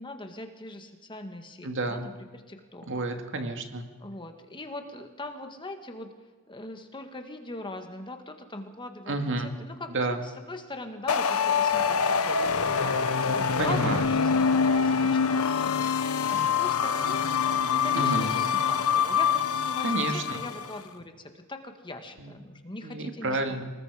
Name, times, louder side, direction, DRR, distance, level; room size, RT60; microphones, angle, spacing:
voice 1, 0.0-2.9 4.0-6.1 6.5-12.9 13.2-15.8 16.3-17.2 17.7-23.4, left 2 dB, 20° left, 5 dB, 1.7 m, -41 dB
voice 2, 1.6-2.0 2.9-3.8 9.1-9.5 9.9-10.2 13.6-14.0 18.0-18.3 19.8-20.4 22.2-22.3 22.8-23.7, right 2 dB, 60° right, 5 dB, 2.2 m, -30 dB
sound 1, 11.1-20.7, left 6 dB, 70° left, 1.2 m, -25 dB
26.0 x 20.0 x 5.0 m, 1.4 s
head